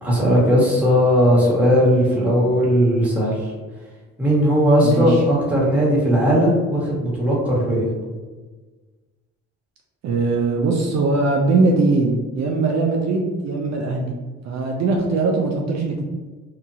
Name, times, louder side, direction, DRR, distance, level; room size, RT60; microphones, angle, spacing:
voice 1, 0.0-3.5 4.2-7.9, equal, 5° right, -7 dB, 1.2 m, -17 dB
voice 2, 4.8-5.2 10.0-14.1 14.4-16.0, right 3 dB, 60° right, 0 dB, 0.5 m, -20 dB
2.8 x 2.4 x 2.7 m, 1.3 s
cardioid pair, 90°, 30 cm